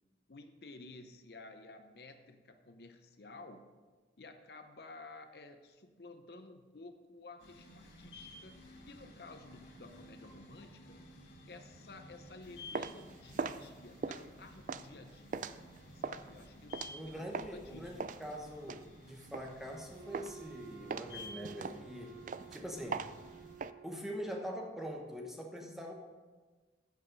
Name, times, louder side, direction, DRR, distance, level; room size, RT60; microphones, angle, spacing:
voice 1, 0.3-3.7 4.2-8.5 8.9-11.0 11.5-15.5 15.9-18.0, left 3 dB, 60° left, 7 dB, 0.7 m, -53 dB
sound 1, 7.4-23.6, left 1 dB, 90° left, 2.1 m, -54 dB
sound 2, 12.4-17.6 18.0-19.8 20.1-20.5 20.9-23.7, right 5 dB, 45° right, 0.3 m, -41 dB
voice 2, 16.9-22.2 22.5-23.1 23.8-25.9, equal, ahead, 0 dB, 1.2 m, -43 dB
Wind instrument woodwind instrument, 19.9-24.6, right 8 dB, 85° right, 0.9 m, -54 dB
15.0 x 5.5 x 5.3 m, 1.3 s
head